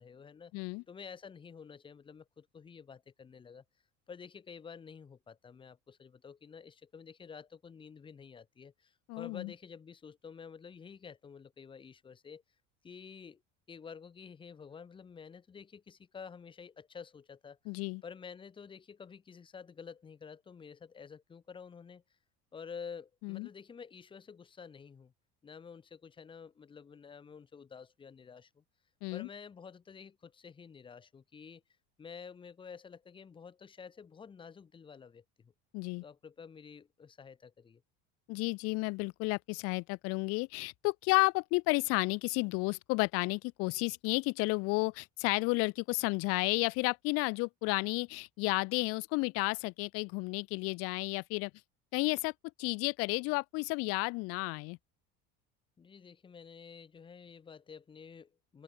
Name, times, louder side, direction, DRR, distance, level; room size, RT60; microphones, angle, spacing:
voice 1, 0.0-3.6 4.1-12.4 12.8-13.4 13.7-17.6 18.0-22.0 22.5-25.1 25.4-28.6 29.1-31.6 32.0-35.5 36.0-37.8 55.8-58.6, left 6 dB, 15° left, 1.4 m, -50 dB
voice 2, 0.5-0.8 9.1-9.5 17.7-18.0 23.2-23.5 29.0-29.3 35.7-36.0 38.3-51.5 51.9-52.3 52.6-54.8, left 27 dB, 55° left, 0.4 m, -32 dB
open air
cardioid pair, 165°, 30 cm